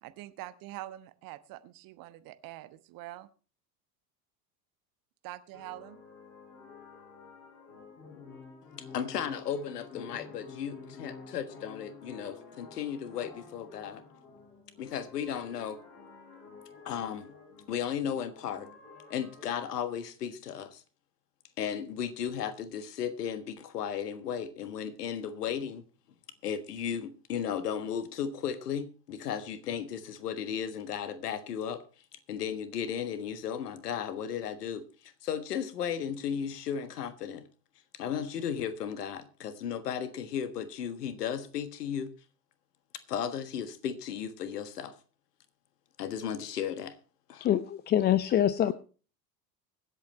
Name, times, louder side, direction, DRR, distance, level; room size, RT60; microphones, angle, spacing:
voice 1, 0.0-3.3 5.2-6.0, right 16 dB, 40° right, 13 dB, 1.2 m, -44 dB
sound 1, 5.5-19.4, left 4 dB, 50° left, 6.6 m, -50 dB
voice 2, 8.9-14.0 14.8-15.8 16.8-17.3 17.7-18.7 19.1-20.8 21.6-25.8 26.4-31.8 32.3-37.4 37.9-42.1 43.1-44.9 46.0-47.0 47.3-47.5, left 8 dB, 65° left, 13 dB, 1.6 m, -35 dB
voice 3, 47.4-48.7, left 11 dB, 20° left, 16 dB, 0.5 m, -25 dB
24.0 x 8.1 x 3.1 m, 0.37 s
figure-of-eight pair, 70°, 50 cm